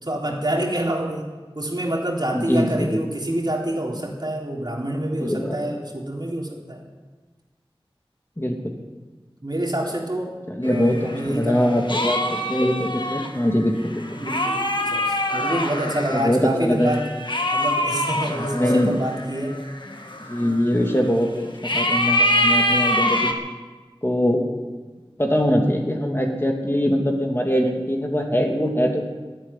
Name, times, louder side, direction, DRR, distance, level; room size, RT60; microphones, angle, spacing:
voice 1, 0.0-1.2 1.6-6.9 9.4-10.3 10.6-12.1 14.2-17.0 17.5-19.6, right 1 dB, 50° right, -2 dB, 3.7 m, -27 dB
voice 2, 2.3-3.0 5.2-5.8 8.4-8.7 10.5-14.1 16.1-17.0 18.3-18.9 20.3-21.5 21.7-23.3 24.0-24.4 25.2-29.0, equal, 25° left, 1 dB, 2.4 m, -22 dB
sound 1, 10.6-16.3 16.8-21.1 21.6-23.3, left 1 dB, 55° left, 1.8 m, -25 dB
12.5 x 11.5 x 10.0 m, 1.3 s
wide cardioid pair, 40°, 10 cm